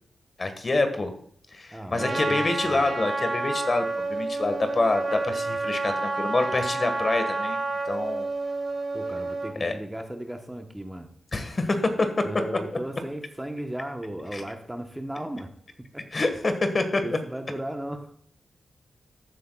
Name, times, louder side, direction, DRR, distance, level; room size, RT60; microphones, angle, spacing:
voice 1, 0.4-1.1 1.5-7.6 7.8-8.3 9.6-9.7 11.3-12.1 14.3-14.4 16.1-17.0, left 2 dB, 45° left, 7 dB, 1.5 m, -26 dB
voice 2, 1.7-2.9 8.9-11.1 12.2-15.5 15.9-16.1 17.0-18.1, right 1 dB, 10° right, 5 dB, 1.0 m, -35 dB
Trumpet, 2.0-9.6, right 3 dB, 55° right, 1.9 m, -29 dB
14.5 x 8.0 x 2.3 m, 0.65 s
cardioid pair, 70°, 0 cm